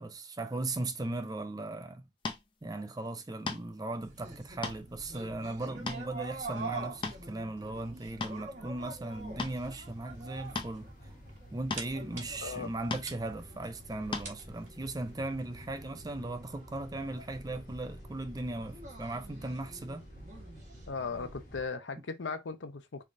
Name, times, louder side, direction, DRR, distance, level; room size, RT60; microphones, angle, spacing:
voice 1, 0.0-2.0 2.6-10.9 11.5-20.0, right 2 dB, 20° right, 0.5 m, -38 dB
sound 1, 2.2-2.4 3.5-3.8 4.4-4.8 5.3-5.4 5.9-6.0 6.8-7.4 7.9-8.4 9.4-9.6 10.5-10.7 11.7-11.9 12.9-13.1 14.1-14.3, left 3 dB, 25° left, 0.6 m, -36 dB
sound 2, 4.0-21.7, right 3 dB, 40° right, 1.3 m, -46 dB
sound 3, 8.8-21.6, equal, 45° left, 1.1 m, -54 dB
voice 2, 20.9-23.1, left 4 dB, 80° left, 0.7 m, -37 dB
3.7 x 3.4 x 2.6 m
head